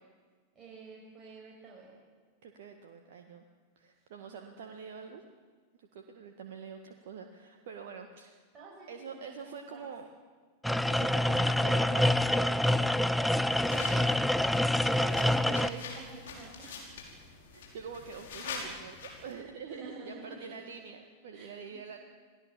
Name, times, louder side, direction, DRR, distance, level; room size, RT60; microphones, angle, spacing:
voice 1, 0.5-1.9 8.5-9.9 13.4-14.6 14.9-16.8 19.6-20.5 21.3-21.8, right 3 dB, 20° right, -5 dB, 6.8 m, -49 dB
voice 2, 2.4-3.4 3.8-5.2 5.8-8.4 8.9-10.1 10.9-13.0 15.2-15.9 17.5-22.0, right 6 dB, 55° right, 4 dB, 1.7 m, -45 dB
sound 1, 10.6-15.7, left 1 dB, ahead, 0.7 m, -26 dB
sound 2, 13.5-19.3, left 4 dB, 60° left, 5.4 m, -44 dB
28.0 x 19.0 x 7.5 m, 1.5 s
figure-of-eight pair, 90°, 0 cm